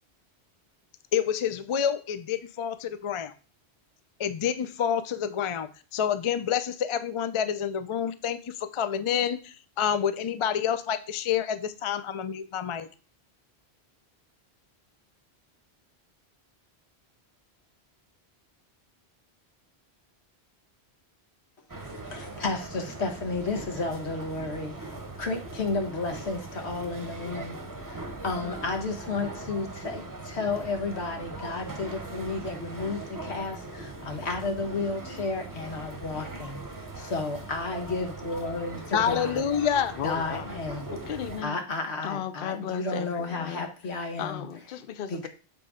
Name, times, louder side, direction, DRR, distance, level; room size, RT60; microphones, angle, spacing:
voice 1, 1.1-3.3 4.2-12.9 38.9-40.0, left 8 dB, 45° left, 0.4 m, -28 dB
sound 1, 21.7-41.4, right 2 dB, 20° right, 0.8 m, -40 dB
voice 2, 22.0-39.4 40.0-40.8 41.4-44.4 45.1-45.3, left 3 dB, 85° left, 1.5 m, -32 dB
voice 3, 39.9-40.5 40.9-41.6 42.0-43.7 44.2-45.3, left 9 dB, 60° left, 0.8 m, -35 dB
7.7 x 4.3 x 4.9 m
omnidirectional pair, 1.1 m